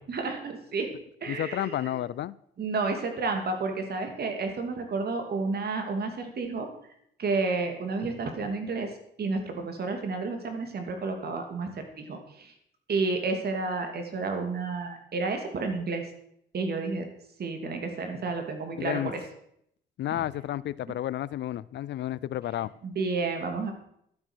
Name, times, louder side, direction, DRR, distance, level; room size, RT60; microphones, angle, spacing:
voice 1, 0.1-0.9 1.2-2.0 2.6-6.7 7.2-8.9 9.2-12.5 12.9-16.1 16.5-17.1 17.4-19.2 22.8-23.7, right 3 dB, 55° right, 5 dB, 2.8 m, -31 dB
voice 2, 1.3-2.3 18.8-19.1 20.0-22.7, left 12 dB, 65° left, 21 dB, 0.5 m, -31 dB
12.5 x 8.4 x 6.3 m, 0.72 s
cardioid pair, 90°, 20 cm